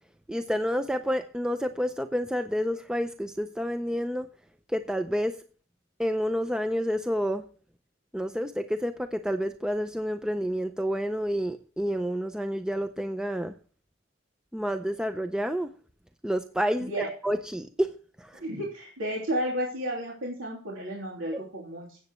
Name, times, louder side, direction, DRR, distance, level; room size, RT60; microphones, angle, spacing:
voice 1, 0.3-4.3 4.7-5.4 6.0-7.4 8.1-13.5 14.5-15.7 16.2-18.4, equal, 5° right, 8 dB, 0.4 m, -29 dB
voice 2, 18.3-22.0, equal, 90° right, -3 dB, 3.2 m, -32 dB
16.0 x 8.1 x 3.1 m, 0.40 s
head